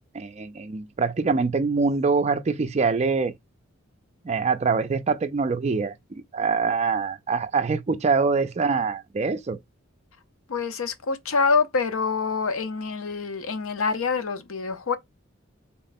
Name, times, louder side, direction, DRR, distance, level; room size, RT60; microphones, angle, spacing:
voice 1, 0.1-3.3 4.2-5.9 6.3-9.6, right 4 dB, 30° right, 0.3 m, -24 dB
voice 2, 10.5-15.0, left 4 dB, 75° left, 0.6 m, -26 dB
3.6 x 2.1 x 4.0 m
head